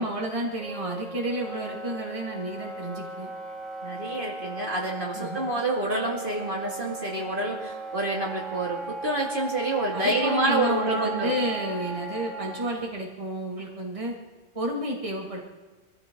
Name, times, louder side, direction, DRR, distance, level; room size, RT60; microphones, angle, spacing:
voice 1, 0.0-3.3 5.1-5.6 9.9-14.2 14.5-15.4, right 1 dB, 30° right, -2 dB, 2.5 m, -31 dB
Wind instrument woodwind instrument, 0.6-12.7, right 3 dB, ahead, 2.9 m, -37 dB
voice 2, 3.8-11.3, right 2 dB, 50° right, -2 dB, 2.6 m, -28 dB
24.5 x 15.0 x 3.9 m, 1.3 s
omnidirectional pair, 1.1 m